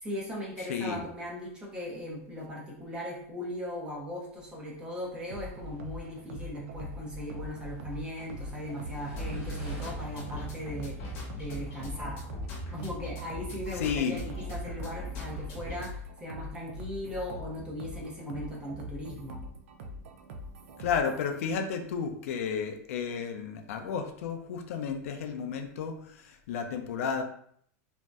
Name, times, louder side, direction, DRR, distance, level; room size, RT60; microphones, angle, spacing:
voice 1, 0.0-12.2 12.7-19.4, left 1 dB, 10° right, -3 dB, 0.6 m, -38 dB
voice 2, 0.7-1.0 13.8-14.2 20.8-27.2, left 6 dB, 70° left, 5 dB, 0.4 m, -32 dB
Motorcycle / Engine, 4.4-14.1, right 2 dB, 40° right, 1.2 m, -46 dB
sound 1, 5.3-21.3, left 1 dB, 65° right, 0.4 m, -43 dB
sound 2, 9.1-15.9, equal, 30° left, 0.7 m, -40 dB
2.6 x 2.1 x 3.4 m, 0.65 s
supercardioid pair, 175°, 8 cm